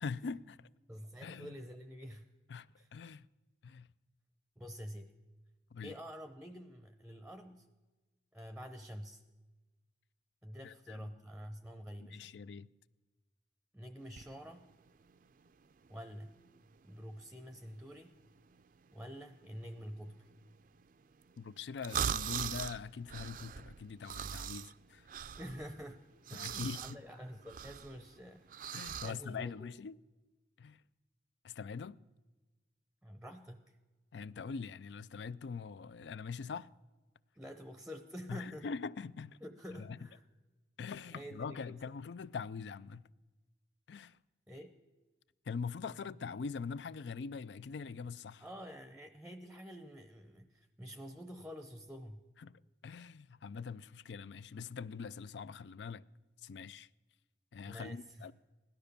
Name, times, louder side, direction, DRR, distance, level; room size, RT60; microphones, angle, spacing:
voice 1, 0.0-0.7 1.2-1.6 2.5-3.2 3.6-3.9 5.7-5.9 10.6-11.1 12.1-12.7 21.4-25.1 26.3-27.0 28.7-30.0 30.6-30.8 31.4-32.0 34.1-36.7 38.3-39.4 39.8-39.9 40.8-43.1 43.9-44.2 45.5-48.4 52.4-56.0 56.4-56.9 57.5-58.3, left 5 dB, 75° left, 0.4 m, -43 dB
voice 2, 0.9-2.3 2.8-2.9 4.6-5.1 5.8-7.7 8.3-9.2 10.4-12.3 13.7-14.7 15.9-16.4 16.8-18.1 18.9-20.3 25.4-26.0 26.3-29.7 33.0-33.8 37.3-38.7 39.4-40.2 41.1-41.8 44.5-44.8 48.4-52.2 57.6-58.3, equal, 5° right, 0.6 m, -48 dB
sound 1, 14.0-29.1, right 8 dB, 50° right, 0.4 m, -42 dB
17.0 x 12.5 x 6.8 m
head